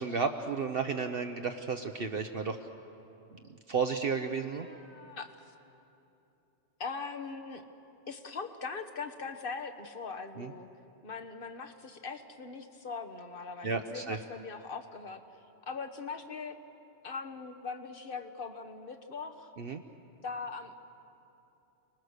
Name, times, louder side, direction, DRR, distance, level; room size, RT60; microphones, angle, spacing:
voice 1, 0.0-2.6 3.7-4.7 10.4-10.5 13.6-14.2 19.6-19.8, right 5 dB, 55° right, 5 dB, 1.0 m, -32 dB
voice 2, 4.5-5.5 6.8-7.6 8.1-10.7 11.0-15.2 15.7-16.6 17.0-19.5 20.2-20.8, left 4 dB, 50° left, 7 dB, 1.4 m, -41 dB
29.5 x 21.0 x 6.6 m, 2.9 s
omnidirectional pair, 1.2 m